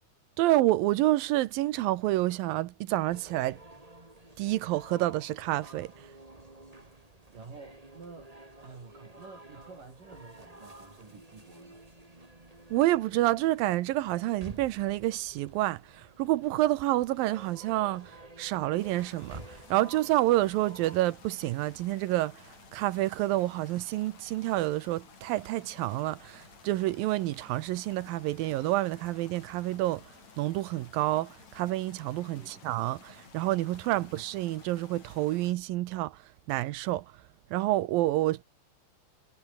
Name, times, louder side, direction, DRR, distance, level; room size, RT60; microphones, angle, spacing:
voice 1, 0.4-3.6 4.4-5.9 12.7-22.3 22.7-30.0 30.4-36.2 36.5-37.0 37.5-38.4, right 16 dB, 75° right, 2.3 m, -28 dB
sound 1, 3.1-21.0, right 2 dB, 10° right, 2.6 m, -51 dB
voice 2, 7.3-8.3 8.6-11.8 32.4-32.6 33.9-34.1, right 4 dB, 55° right, 7.1 m, -50 dB
sound 2, 18.8-35.5, left 5 dB, 45° left, 5.2 m, -54 dB
omnidirectional pair, 4.5 m